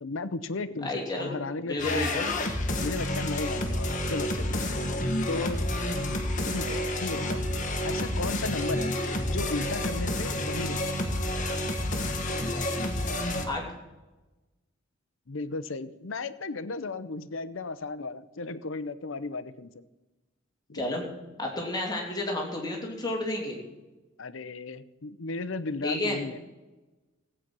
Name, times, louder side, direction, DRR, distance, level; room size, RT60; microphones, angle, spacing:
voice 1, 0.0-2.3 2.8-5.0 5.3-5.6 6.4-7.5 7.8-8.9 9.2-10.9 15.3-19.8 20.7-20.8 24.2-26.4, left 3 dB, 70° left, 14 dB, 0.8 m, -35 dB
voice 2, 0.8-1.3 1.6-2.3 13.4-13.6 20.7-21.0 21.4-23.6 25.8-26.2, left 1 dB, 20° left, -1 dB, 3.0 m, -31 dB
sound 1, 1.8-13.4, left 1 dB, 40° left, 1.6 m, -29 dB
16.0 x 8.8 x 6.2 m, 1.1 s
head